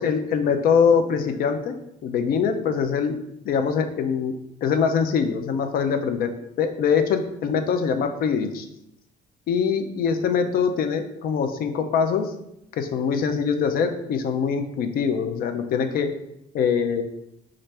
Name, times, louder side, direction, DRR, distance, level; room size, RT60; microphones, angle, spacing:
voice 1, 0.0-3.2 3.4-4.3 4.6-6.3 6.6-8.7 9.5-12.3 12.8-16.1 16.5-17.0, left 6 dB, 60° left, 7 dB, 0.5 m, -23 dB
4.1 x 2.5 x 3.2 m, 0.80 s
cardioid pair, 110°, 17 cm